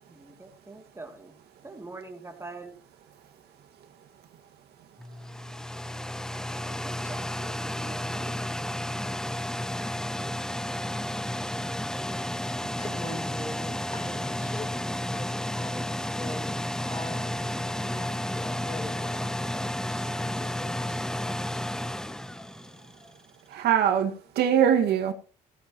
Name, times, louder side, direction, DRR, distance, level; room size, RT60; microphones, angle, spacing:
voice 1, 0.1-1.4 1.6-2.7 6.3-8.4, right 3 dB, 15° right, 2.9 m, -44 dB
sound 1, 5.0-23.1, left 1 dB, 5° left, 0.6 m, -32 dB
voice 2, 12.7-16.6 16.9-21.4, left 2 dB, 20° left, 5.0 m, -42 dB
voice 3, 23.5-25.1, right 9 dB, 70° right, 2.1 m, -22 dB
17.0 x 13.0 x 3.2 m
cardioid pair, 110°, 17 cm